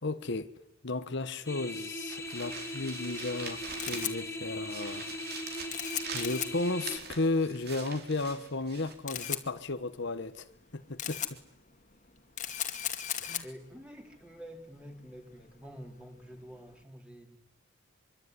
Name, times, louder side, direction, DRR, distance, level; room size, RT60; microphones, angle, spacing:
voice 1, 0.0-0.5 0.8-5.1 5.4-5.5 6.1-11.4 13.2-13.5, left 2 dB, 65° left, 1.2 m, -34 dB
sound 1, 1.4-7.0, left 1 dB, 15° left, 2.8 m, -39 dB
sound 2, 2.1-4.3 4.6-8.9, right 5 dB, 55° right, 4.5 m, -44 dB
Camera, 3.7-16.8, left 10 dB, 40° left, 2.3 m, -40 dB
voice 2, 13.4-17.4, equal, 5° right, 4.0 m, -48 dB
24.5 x 24.0 x 9.7 m
head